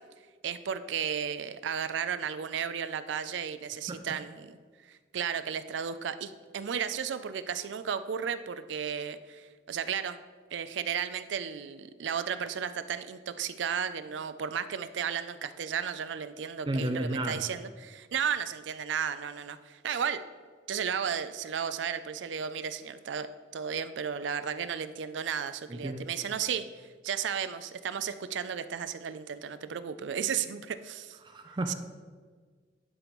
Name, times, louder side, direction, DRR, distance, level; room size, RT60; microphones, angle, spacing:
voice 1, 0.4-4.6 4.9-10.2 10.5-20.2 20.7-23.3 23.5-26.7 27.0-31.2 31.7-31.8, right 7 dB, 90° right, 12 dB, 0.4 m, -34 dB
voice 2, 16.7-17.5 25.7-26.0 31.2-31.7, right 1 dB, 25° right, 6 dB, 0.4 m, -32 dB
11.0 x 5.2 x 3.1 m, 1.5 s
head